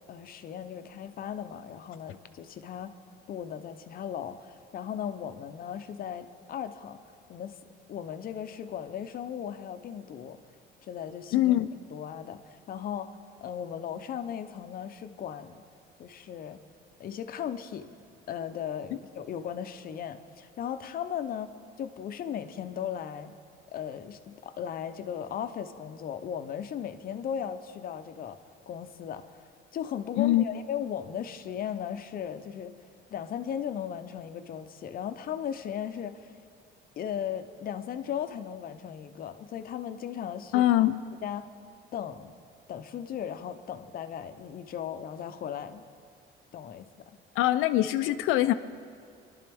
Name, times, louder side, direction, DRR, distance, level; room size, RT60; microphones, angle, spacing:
voice 1, 0.0-2.9 3.3-7.0 7.3-7.5 7.9-10.4 10.9-12.4 12.7-15.6 16.0-16.6 17.0-17.9 18.3-21.5 21.8-23.3 23.7-28.4 28.7-29.4 29.7-32.7 33.1-36.3 37.0-40.6 41.2-41.4 41.9-42.3 42.7-45.9 46.5-46.9, left 9 dB, 45° left, 9 dB, 0.7 m, -37 dB
voice 2, 11.3-11.7 30.2-30.4 40.5-41.0 47.4-48.5, left 14 dB, 85° left, 10 dB, 0.5 m, -23 dB
25.5 x 12.0 x 3.5 m, 2.2 s
cardioid pair, 145°, 21 cm